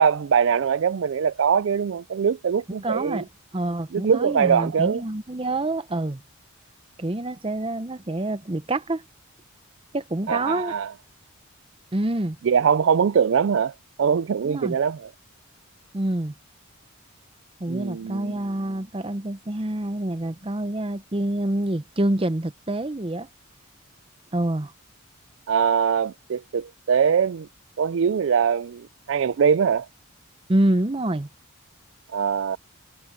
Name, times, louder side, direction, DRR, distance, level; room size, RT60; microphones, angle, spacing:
voice 1, 0.0-3.2 3.9-5.0 10.3-10.9 12.4-13.7 14.0-15.1 17.7-18.4 25.5-27.5 27.8-29.9 32.1-32.6, right 7 dB, 60° right, 0.3 m, -22 dB
voice 2, 2.8-3.2 3.5-6.2 7.0-9.0 9.9-10.7 11.9-12.4 14.4-14.8 15.9-16.3 17.6-23.3 24.3-24.7 30.5-31.3, right 1 dB, 25° right, 0.7 m, -26 dB
head